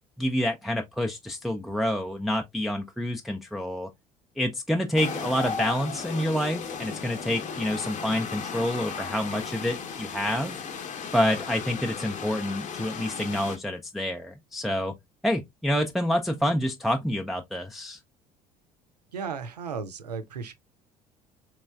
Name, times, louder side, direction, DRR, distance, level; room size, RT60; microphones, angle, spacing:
voice 1, 0.2-3.9 4.4-10.6 11.1-14.9 15.2-18.0, equal, ahead, 0.4 m, -28 dB
sound 1, 5.0-13.6, left 5 dB, 40° left, 0.8 m, -35 dB
voice 2, 19.1-20.5, right 5 dB, 85° right, 0.5 m, -35 dB
4.0 x 3.0 x 2.3 m
figure-of-eight pair, 60°, 20 cm